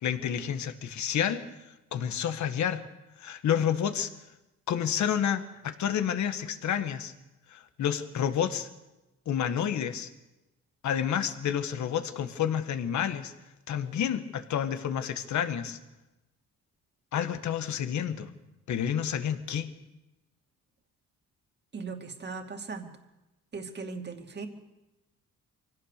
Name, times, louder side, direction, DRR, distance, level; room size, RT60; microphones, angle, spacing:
voice 1, 0.0-1.4 1.9-2.8 3.2-4.1 4.7-7.1 7.5-8.7 9.3-10.1 10.8-13.3 13.7-15.8 17.1-18.3 18.7-19.7, left 9 dB, 70° left, 9 dB, 1.7 m, -29 dB
voice 2, 21.7-22.9 23.5-24.5, right 4 dB, 35° right, 4 dB, 2.6 m, -38 dB
24.5 x 17.0 x 6.8 m, 1.0 s
cardioid pair, 90°, 30 cm